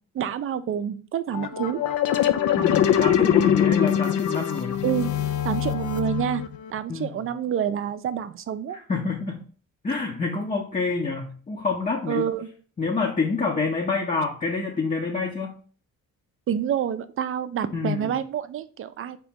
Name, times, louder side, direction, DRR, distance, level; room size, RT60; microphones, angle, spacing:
voice 1, 0.1-1.8 4.8-5.1 5.4-6.4 6.7-8.8 12.1-12.5 16.5-19.2, right 9 dB, 45° right, 12 dB, 0.4 m, -27 dB
Synth In, 1.3-6.7, left 9 dB, 80° left, 0.5 m, -23 dB
voice 2, 2.6-4.8 6.9-7.3 8.9-9.4 9.8-12.3 12.8-15.6 17.7-18.1, left 4 dB, 25° left, 0 dB, 0.7 m, -27 dB
3.9 x 3.0 x 3.5 m, 0.43 s
cardioid pair, 90°, 30 cm